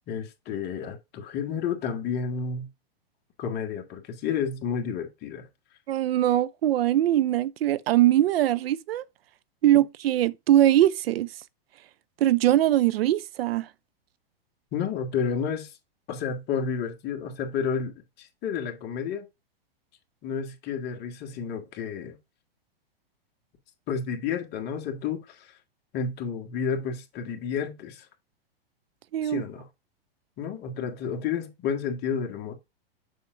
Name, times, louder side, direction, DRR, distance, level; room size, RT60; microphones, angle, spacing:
voice 1, 0.1-2.7 3.4-5.5 14.7-15.7 16.1-19.3 20.2-22.2 23.9-25.6 25.9-28.1 29.2-29.7 30.4-32.5, left 6 dB, 35° left, 1.6 m, -31 dB
voice 2, 5.9-9.0 9.6-11.3 12.2-13.7 29.1-29.4, right 13 dB, 80° right, 0.5 m, -22 dB
7.0 x 5.7 x 2.5 m
hypercardioid pair, 135°, 30 cm